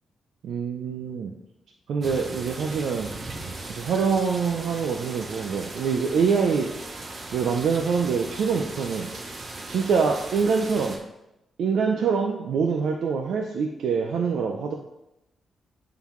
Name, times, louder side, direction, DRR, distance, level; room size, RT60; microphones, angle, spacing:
voice 1, 0.4-1.3 1.9-3.1 3.7-6.8 7.3-9.1 9.7-11.0 11.6-14.7, right 5 dB, 80° right, 3 dB, 0.5 m, -25 dB
sound 1, 2.0-11.0, right 2 dB, 45° right, 1.0 m, -38 dB
10.5 x 3.9 x 3.1 m, 0.90 s
wide cardioid pair, 130°, 0 cm